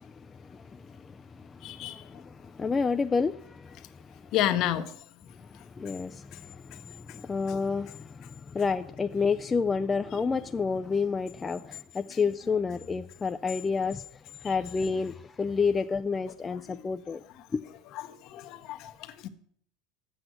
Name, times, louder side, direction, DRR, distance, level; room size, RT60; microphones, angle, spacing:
voice 1, 0.0-4.1 5.5-14.0 14.4-17.2 17.5-17.6, left 5 dB, 20° left, 0.3 m, -30 dB
voice 2, 1.6-2.0 4.3-4.9 16.7-16.8 18.0-19.3, left 12 dB, 50° left, 0.8 m, -30 dB
7.9 x 6.0 x 7.7 m
supercardioid pair, 125°, 0 cm